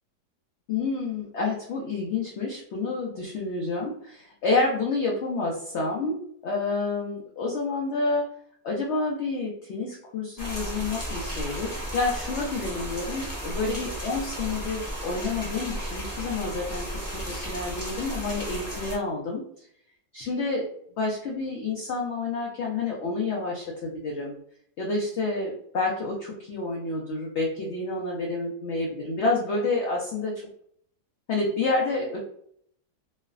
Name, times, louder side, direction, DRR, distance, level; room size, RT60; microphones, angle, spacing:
voice 1, 0.7-8.3 8.6-19.7 20.1-20.7 21.0-24.4 24.8-30.4 31.3-32.2, left 3 dB, 75° left, -2 dB, 0.6 m, -29 dB
sound 1, 10.4-19.0, equal, 20° left, 0.7 m, -34 dB
3.0 x 2.0 x 2.4 m, 0.65 s
omnidirectional pair, 1.7 m